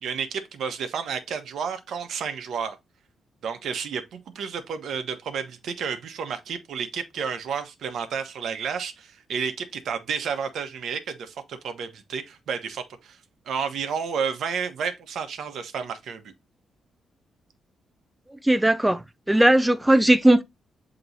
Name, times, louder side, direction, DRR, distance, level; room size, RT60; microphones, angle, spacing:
voice 1, 0.0-2.8 3.4-13.2 13.5-16.3, right 6 dB, 70° right, 1.0 m, -31 dB
voice 2, 18.4-19.0 19.3-20.4, right 1 dB, 5° right, 0.4 m, -18 dB
7.6 x 3.0 x 4.0 m
cardioid pair, 100°, 0 cm